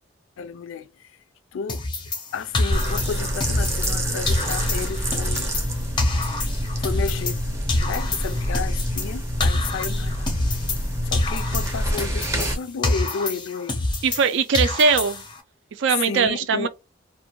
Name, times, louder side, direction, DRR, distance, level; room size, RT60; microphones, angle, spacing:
voice 1, 0.4-1.1 1.5-1.9 2.3-5.5 6.8-7.4 7.8-10.3 11.1-13.8 15.9-16.7, left 6 dB, 80° left, 0.3 m, -32 dB
sound 1, 1.7-4.0 4.3-7.4 7.7-10.9 11.1-14.3 14.5-15.4, left 2 dB, 25° left, 0.5 m, -27 dB
sound 2, 2.7-12.5, equal, 15° right, 0.6 m, -26 dB
voice 2, 14.0-15.2 15.8-16.7, right 5 dB, 65° right, 0.4 m, -20 dB
2.5 x 2.2 x 2.9 m
head